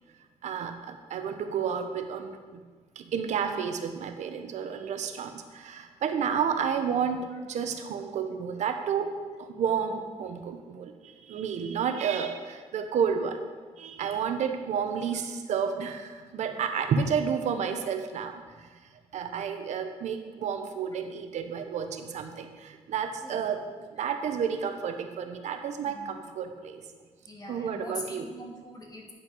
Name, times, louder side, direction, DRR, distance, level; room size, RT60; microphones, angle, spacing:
voice 1, 0.4-2.6 3.0-13.4 13.8-18.7 19.1-23.6 23.9-26.8 27.5-28.3, right 7 dB, 80° right, 7 dB, 0.8 m, -31 dB
voice 2, 27.3-29.1, left 2 dB, 30° left, 1 dB, 1.5 m, -43 dB
9.8 x 5.6 x 5.4 m, 1.5 s
cardioid pair, 100°, 12 cm